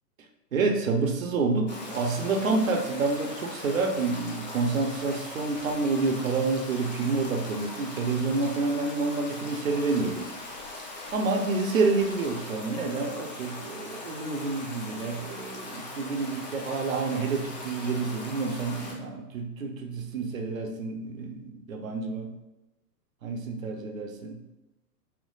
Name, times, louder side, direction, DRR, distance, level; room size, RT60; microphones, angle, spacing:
voice 1, 0.5-10.3 11.1-22.3 23.2-24.4, right 3 dB, 55° right, 4 dB, 0.8 m, -28 dB
Stream, 1.7-18.9, left 2 dB, 30° left, 0.4 m, -40 dB
4.3 x 2.1 x 3.9 m, 0.98 s
figure-of-eight pair, 115°, 49 cm